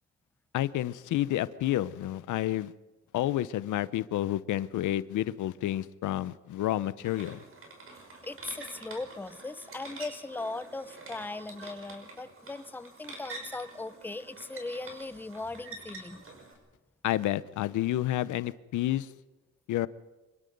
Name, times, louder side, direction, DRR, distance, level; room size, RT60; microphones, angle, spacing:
voice 1, 0.5-2.7 3.1-7.4 17.0-19.1 19.7-19.9, left 14 dB, 80° left, 17 dB, 0.8 m, -30 dB
sound 1, 7.0-16.5, right 2 dB, 45° right, 5.6 m, -47 dB
voice 2, 7.9-16.2, left 2 dB, 5° left, 15 dB, 0.6 m, -39 dB
26.0 x 21.5 x 5.3 m, 1.1 s
cardioid pair, 90°, 30 cm